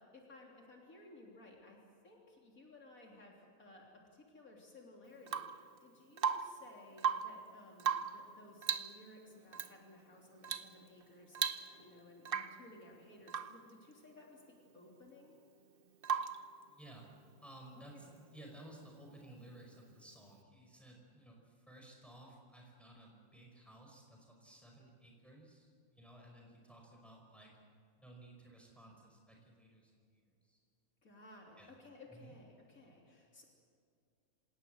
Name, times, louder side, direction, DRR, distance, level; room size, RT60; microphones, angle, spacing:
voice 1, 0.0-1.8 2.0-14.4 14.7-15.4 17.9-18.1 31.0-33.4, left 2 dB, 75° left, -1 dB, 3.8 m, -58 dB
Rain / Water tap faucet / Drip, 5.3-5.6 6.2-6.6 6.9-7.4 7.8-8.2 8.6-9.0 9.5-9.7 10.4-10.7 11.0-11.1 11.3-11.9 12.2-12.6 13.3-13.6 16.0-16.5 18.4-18.5, right 7 dB, 45° right, 1.0 m, -36 dB
voice 2, 16.7-17.1 17.4-27.6 28.0-30.6 31.6-31.8 32.1-32.3, right 1 dB, ahead, 0 dB, 5.1 m, -57 dB
27.0 x 18.5 x 7.9 m, 2.4 s
omnidirectional pair, 1.5 m